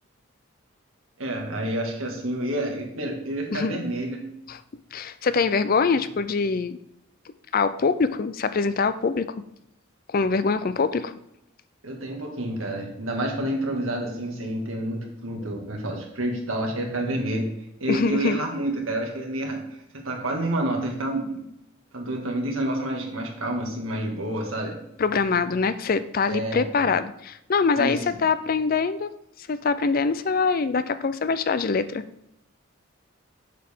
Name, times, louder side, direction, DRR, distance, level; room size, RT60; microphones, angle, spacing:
voice 1, 1.2-4.3 11.8-17.5 17.8-19.6 19.9-21.4 21.9-24.8 26.3-26.9 27.8-28.2, right 1 dB, 85° right, 1 dB, 1.9 m, -29 dB
voice 2, 3.5-3.8 4.5-4.6 4.9-6.8 7.5-9.3 10.1-11.1 17.9-18.4 25.0-29.1 29.5-32.0, left 4 dB, 45° left, 13 dB, 0.4 m, -24 dB
7.4 x 6.7 x 3.6 m, 0.81 s
head